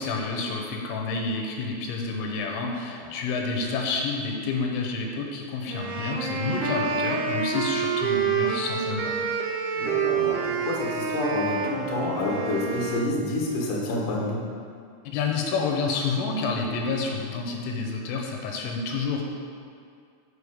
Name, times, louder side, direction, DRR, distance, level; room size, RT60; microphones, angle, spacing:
voice 1, 0.0-9.2 15.0-19.2, left 4 dB, 90° left, 1 dB, 3.3 m, -29 dB
sound 1, 5.7-13.2, right 5 dB, 80° right, 2.9 m, -28 dB
voice 2, 9.8-14.4, left 1 dB, 70° left, -4 dB, 2.0 m, -28 dB
6.6 x 5.2 x 4.9 m, 2.3 s
omnidirectional pair, 5.5 m